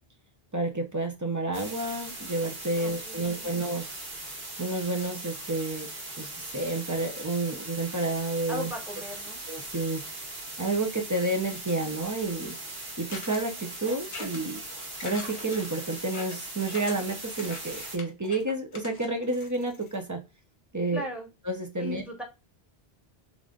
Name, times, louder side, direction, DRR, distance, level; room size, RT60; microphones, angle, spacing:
voice 1, 0.5-4.0 4.6-5.9 6.2-8.7 9.5-10.0 10.6-12.6 13.0-14.6 15.0-20.2 20.7-21.0 21.4-22.0, right 2 dB, 20° right, 3 dB, 0.5 m, -30 dB
sound 1, 1.5-18.0, right 2 dB, 70° right, 1.6 m, -40 dB
voice 2, 2.8-3.5 8.5-9.4 20.9-21.3 21.8-22.2, left 1 dB, ahead, 0 dB, 0.9 m, -38 dB
sound 2, 13.1-20.0, left 3 dB, 70° left, 1.1 m, -44 dB
3.5 x 2.5 x 3.6 m, 0.27 s
omnidirectional pair, 1.0 m